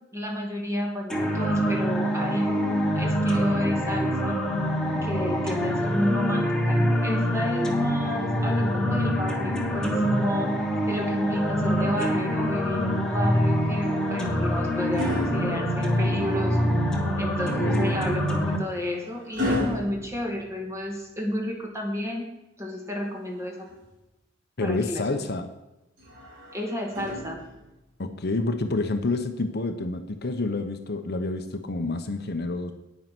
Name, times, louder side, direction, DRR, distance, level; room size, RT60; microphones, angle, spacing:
voice 1, 0.1-4.4 5.0-10.5 10.9-16.7 17.2-22.3 22.6-23.5 24.6-25.0 26.5-27.4, left 1 dB, 15° right, 1 dB, 2.2 m, -31 dB
sound 1, 1.1-18.6, equal, 5° left, 1.6 m, -25 dB
sound 2, 13.8-16.3 17.9-21.1 22.8-24.0 26.0-27.8 29.0-29.2, left 1 dB, 65° right, 3.6 m, -35 dB
voice 2, 17.6-17.9 24.6-25.5 28.0-32.7, left 2 dB, 55° left, 7 dB, 0.9 m, -28 dB
9.4 x 9.3 x 6.1 m, 0.94 s
head